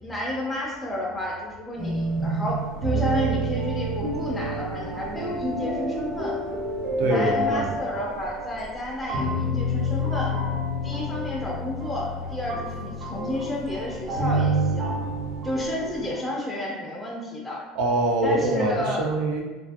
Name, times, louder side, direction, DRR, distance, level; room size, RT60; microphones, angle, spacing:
voice 1, 0.0-6.4 7.0-10.3 10.8-15.0 15.4-17.6 18.2-19.1, left 1 dB, 5° left, -4 dB, 0.4 m, -31 dB
sound 1, 1.8-16.1, equal, 45° right, 0.9 m, -28 dB
voice 2, 7.0-7.8 17.8-19.4, right 2 dB, 70° right, 1 dB, 0.5 m, -24 dB
2.6 x 2.3 x 2.5 m, 1.2 s
cardioid pair, 160°, 0 cm